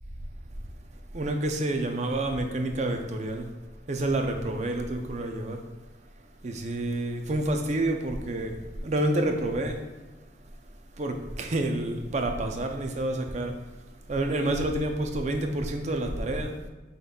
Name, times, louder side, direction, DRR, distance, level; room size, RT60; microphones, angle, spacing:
voice 1, 1.1-3.5 3.9-5.6 6.4-8.6 8.8-9.8 11.0-13.6 14.1-16.6, right 1 dB, 40° right, 0.5 m, -28 dB
5.2 x 3.8 x 2.3 m
head